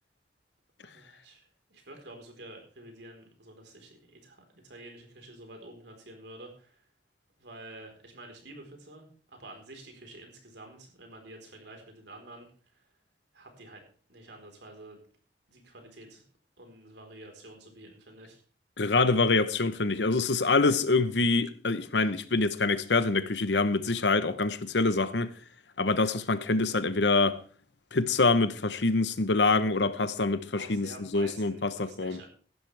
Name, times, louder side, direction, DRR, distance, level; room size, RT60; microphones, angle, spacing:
voice 1, 0.8-6.8 7.4-12.5 12.7-12.8 13.3-13.8 14.1-15.0 15.5-16.2 16.6-18.4 24.0-24.3 30.6-32.3, right 1 dB, 85° right, 4.3 m, -49 dB
voice 2, 18.8-25.3 25.8-27.4 27.9-32.2, left 3 dB, 85° left, 1.0 m, -25 dB
15.5 x 12.0 x 3.4 m
head